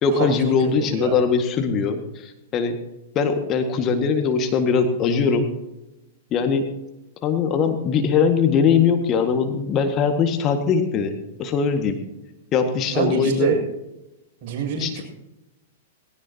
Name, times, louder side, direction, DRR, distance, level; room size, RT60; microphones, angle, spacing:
voice 1, 0.0-2.8 3.1-5.5 6.3-6.6 7.2-11.1 11.4-12.0 12.5-13.5 14.8-15.0, left 6 dB, 35° left, 5 dB, 1.8 m, -21 dB
voice 2, 0.8-1.2 12.9-13.6 14.4-15.0, right 7 dB, 45° right, -1 dB, 6.8 m, -25 dB
19.0 x 17.5 x 2.9 m, 0.96 s
figure-of-eight pair, 105°, 0 cm